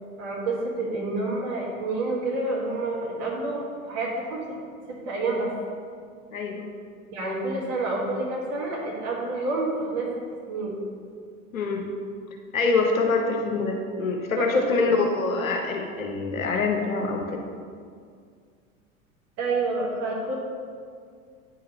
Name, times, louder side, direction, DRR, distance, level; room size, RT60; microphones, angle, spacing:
voice 1, 0.2-4.6 5.0-5.5 7.1-10.1 10.5-10.7 14.3-14.7 19.4-20.3, right 2 dB, 35° right, -3 dB, 1.6 m, -28 dB
voice 2, 6.3-6.7 11.5-11.9 12.5-17.4, left 4 dB, 70° left, 2 dB, 0.8 m, -25 dB
9.0 x 4.8 x 3.0 m, 2.1 s
figure-of-eight pair, 80°, 42 cm